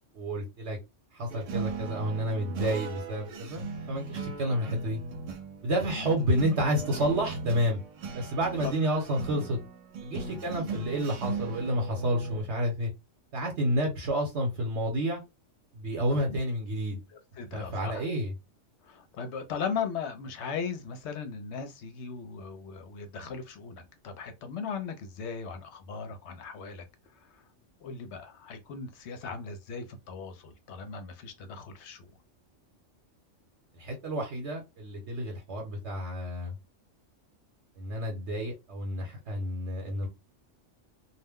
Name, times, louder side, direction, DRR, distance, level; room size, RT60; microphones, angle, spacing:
voice 1, 0.1-0.8 1.1-5.0 5.6-7.8 8.1-9.6 10.0-12.9 13.3-15.2 15.7-17.0 17.5-18.3 33.7-36.5 37.8-40.1, equal, 65° right, 1.1 m, -30 dB
sound 1, 1.3-12.4, right 4 dB, 85° right, 1.0 m, -38 dB
voice 2, 10.1-10.4 16.3-16.4 17.4-18.1 18.9-26.8 27.8-32.0, left 6 dB, 70° left, 0.8 m, -38 dB
2.4 x 2.1 x 3.5 m
omnidirectional pair, 1.3 m